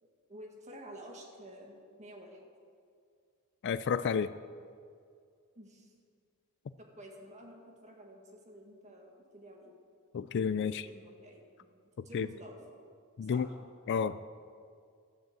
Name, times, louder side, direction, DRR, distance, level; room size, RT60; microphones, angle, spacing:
voice 1, 0.0-2.4 5.6-5.9 6.8-9.7 10.7-11.8 12.0-12.8 13.2-13.5, equal, 35° right, 1 dB, 1.8 m, -51 dB
voice 2, 3.6-4.3 10.1-10.9 12.0-12.3 13.2-13.5 13.9-14.2, left 6 dB, 55° left, 14 dB, 0.3 m, -31 dB
12.0 x 7.6 x 7.7 m, 2.3 s
head